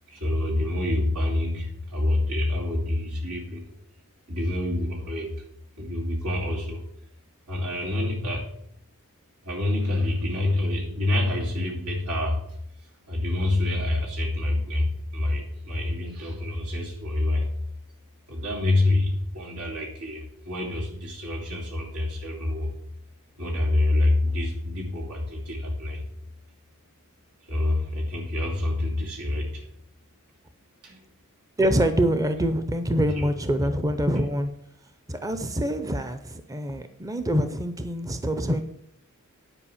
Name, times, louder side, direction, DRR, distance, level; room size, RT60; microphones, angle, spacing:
voice 1, 0.1-3.7 4.3-5.4 5.8-6.8 7.5-8.5 9.4-12.4 13.1-17.5 18.3-22.7 23.4-26.0 27.5-29.7 30.8-31.0 33.2-33.3, left 2 dB, 90° right, -1 dB, 2.6 m, -27 dB
voice 2, 31.6-34.5 35.1-38.6, equal, 15° right, 9 dB, 0.6 m, -25 dB
9.9 x 4.9 x 7.1 m, 0.73 s
head